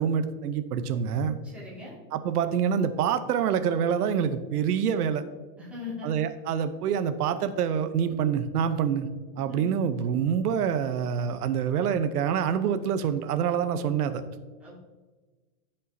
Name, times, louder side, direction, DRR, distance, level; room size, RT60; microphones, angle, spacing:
voice 1, 0.0-1.4 2.1-5.2 6.0-9.1 9.4-14.2, right 8 dB, 90° right, 10 dB, 0.9 m, -26 dB
voice 2, 1.5-2.0 5.6-6.1 9.4-9.7 14.6-14.8, left 4 dB, 5° right, -7 dB, 2.0 m, -40 dB
14.0 x 5.4 x 2.7 m, 1.3 s
supercardioid pair, 170°, 44 cm